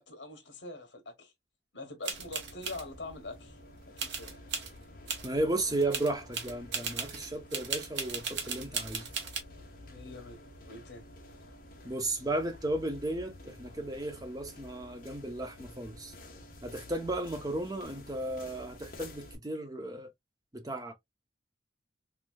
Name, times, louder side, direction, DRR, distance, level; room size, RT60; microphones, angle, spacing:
voice 1, 0.0-1.3 1.7-3.6 4.0-4.3 9.8-11.0, left 2 dB, 75° left, 1.2 m, -44 dB
sound 1, 2.0-2.8 4.0-4.7 5.1-5.3 5.7-9.4, right 6 dB, 70° right, 0.9 m, -36 dB
sound 2, 2.1-19.3, left 1 dB, 45° left, 1.1 m, -50 dB
voice 2, 5.2-9.1 11.8-16.1 16.6-20.1 20.5-20.9, right 1 dB, 20° right, 0.6 m, -34 dB
3.3 x 3.1 x 2.2 m
head